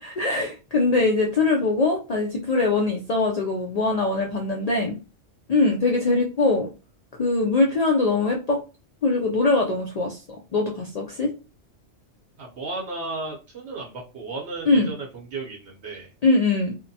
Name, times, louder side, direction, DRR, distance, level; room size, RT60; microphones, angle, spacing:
voice 1, 0.0-5.0 5.5-6.7 7.2-8.6 9.0-10.2 10.5-11.3 14.7-14.9 16.2-16.7, left 3 dB, 85° left, 0 dB, 0.3 m, -22 dB
voice 2, 12.4-16.1, right 3 dB, 65° right, -2 dB, 0.9 m, -34 dB
2.8 x 2.1 x 2.6 m, 0.31 s
omnidirectional pair, 1.3 m